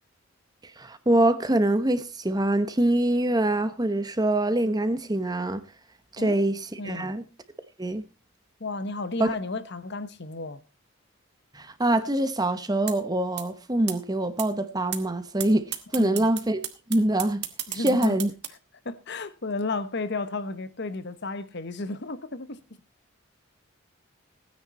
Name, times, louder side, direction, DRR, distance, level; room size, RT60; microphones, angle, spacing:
voice 1, 0.8-5.6 6.1-7.2 7.8-8.0 9.2-9.3 11.5-16.6 16.9-17.4 17.7-18.3, right 1 dB, 20° right, 0.9 m, -24 dB
voice 2, 6.8-7.1 8.6-10.6 16.0-16.3 17.7-18.2 18.8-22.6, left 3 dB, 55° left, 1.0 m, -33 dB
sound 1, 12.9-13.0 13.4-13.5 13.9-14.0 14.4-14.5 14.9-15.0 15.4-15.5 15.7-18.5, right 12 dB, 50° right, 1.5 m, -32 dB
16.5 x 9.7 x 4.2 m
head